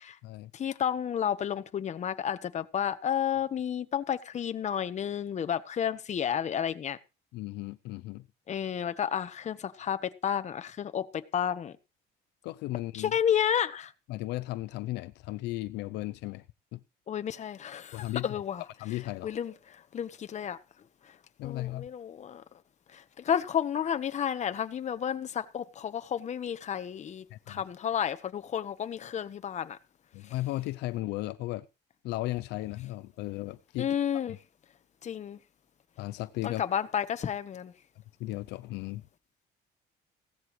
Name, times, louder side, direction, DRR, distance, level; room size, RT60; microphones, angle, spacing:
voice 1, 0.5-7.0 8.5-11.7 12.9-13.9 17.1-18.6 19.2-20.6 21.4-22.4 22.9-29.8 33.8-34.4 35.0-35.4 36.4-37.7, left 9 dB, 45° left, 1.2 m, -31 dB
voice 2, 7.3-8.3 12.4-13.1 14.1-16.4 16.7-16.8 17.9-18.4 18.8-19.3 21.4-21.9 27.3-27.6 30.1-31.7 32.0-33.9 36.0-36.6 38.2-39.0, left 17 dB, 85° left, 0.6 m, -35 dB
16.5 x 13.5 x 3.2 m
cardioid pair, 110°, 17 cm